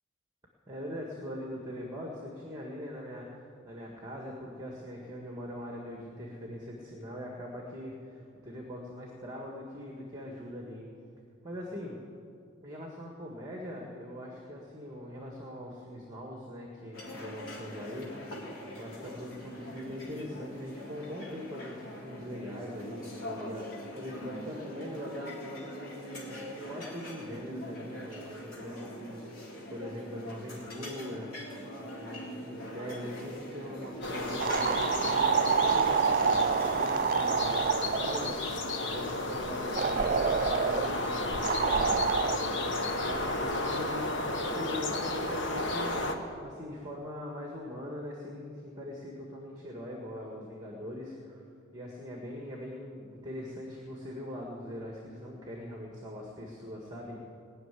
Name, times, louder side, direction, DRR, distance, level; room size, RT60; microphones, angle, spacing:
voice 1, 0.7-10.9 11.4-12.0 12.6-18.5 18.8-29.4 29.7-51.4 51.7-57.2, left 1 dB, 20° right, -1 dB, 1.6 m, -42 dB
sound 1, 16.9-36.9, equal, 80° left, 3.4 m, -42 dB
sound 2, 34.0-46.1, left 2 dB, 55° left, 1.2 m, -33 dB
sound 3, 34.4-38.4 39.8-40.9 41.4-42.4, right 6 dB, 40° right, 0.3 m, -27 dB
19.5 x 6.7 x 9.6 m, 2.4 s
head